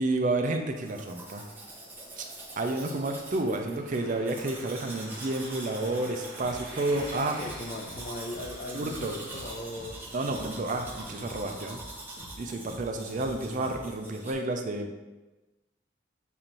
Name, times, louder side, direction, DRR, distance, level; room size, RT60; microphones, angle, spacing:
voice 1, 0.0-1.4 2.2-2.3 2.6-7.4 8.7-9.1 10.1-11.8 12.4-15.0, right 2 dB, 45° right, 4 dB, 0.4 m, -30 dB
Domestic sounds home sounds, 0.7-14.3, right 2 dB, 10° right, 0.9 m, -44 dB
sound 1, 0.8-12.0, right 1 dB, 60° right, 1.0 m, -49 dB
sound 2, 6.4-14.1, equal, 80° left, 1.2 m, -49 dB
voice 2, 6.9-10.0, left 2 dB, 45° left, 3 dB, 0.5 m, -38 dB
6.9 x 2.5 x 2.9 m, 1.1 s
head